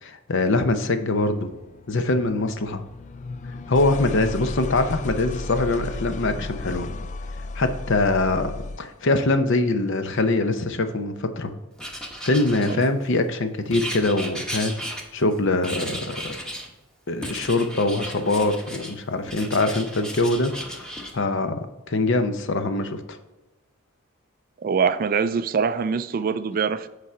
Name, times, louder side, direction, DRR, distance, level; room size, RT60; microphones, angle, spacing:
voice 1, 0.0-1.5 1.9-2.8 3.7-6.9 7.6-8.5 8.8-11.5 12.2-14.8 15.1-16.4 17.1-20.8 21.1-23.2, left 2 dB, 60° left, 0.7 m, -23 dB
sound 1, 1.1-9.0, left 2 dB, 35° left, 0.3 m, -35 dB
Writing, 11.8-13.1 13.7-15.3 15.6-16.7 17.2-18.9 19.3-21.1, equal, 5° left, 1.0 m, -35 dB
voice 2, 24.6-26.9, right 6 dB, 40° right, 0.3 m, -24 dB
8.2 x 4.9 x 4.4 m
head